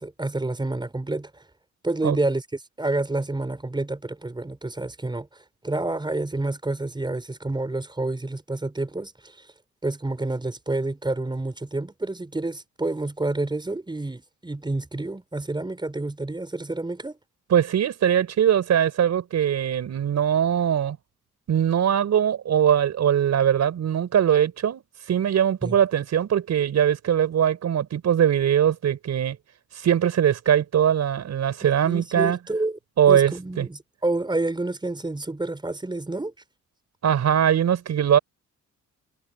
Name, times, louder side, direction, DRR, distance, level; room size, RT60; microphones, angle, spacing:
voice 1, 0.0-1.4 1.8-2.4 2.8-5.3 5.6-9.5 9.8-17.2 25.6-25.8 31.8-32.8 33.1-36.3, right 2 dB, 15° right, 5.0 m, -29 dB
voice 2, 17.5-21.0 21.5-24.8 25.1-29.4 29.8-32.4 33.0-33.7 37.0-38.2, right 9 dB, 60° right, 5.3 m, -21 dB
cardioid pair, 90°, 30 cm